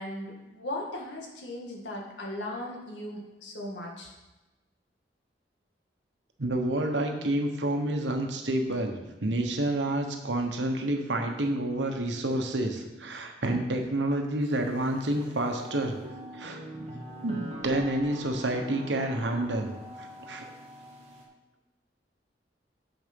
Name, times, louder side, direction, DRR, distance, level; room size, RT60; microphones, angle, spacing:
voice 1, 0.0-4.1, left 1 dB, 80° left, -1 dB, 1.8 m, -37 dB
voice 2, 6.4-16.0 16.3-16.6 17.2-19.7 20.0-20.5, right 1 dB, 85° right, 4 dB, 1.1 m, -29 dB
sound 1, 14.4-21.2, equal, 35° right, 1.5 m, -43 dB
7.1 x 6.7 x 5.3 m, 1.1 s
head